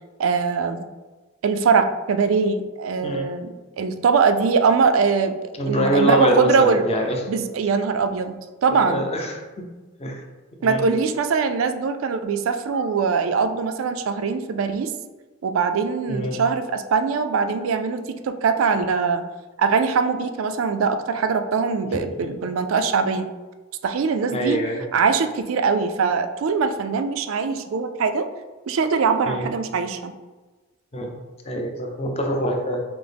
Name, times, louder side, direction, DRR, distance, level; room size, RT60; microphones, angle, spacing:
voice 1, 0.2-0.9 1.4-5.4 5.6-6.8 7.3-8.4 8.6-9.0 10.6-14.9 15.4-19.2 19.6-23.3 23.8-24.6 24.9-28.3 28.7-30.1, right 5 dB, 85° right, 8 dB, 0.4 m, -22 dB
voice 2, 5.6-7.2 8.8-9.4 10.0-10.2 10.6-10.8 16.1-16.4 22.2-22.3 24.3-24.8 29.3-29.5 30.9-31.1 31.4-32.8, equal, 30° left, 2 dB, 0.6 m, -24 dB
5.9 x 2.0 x 3.4 m, 1.2 s
head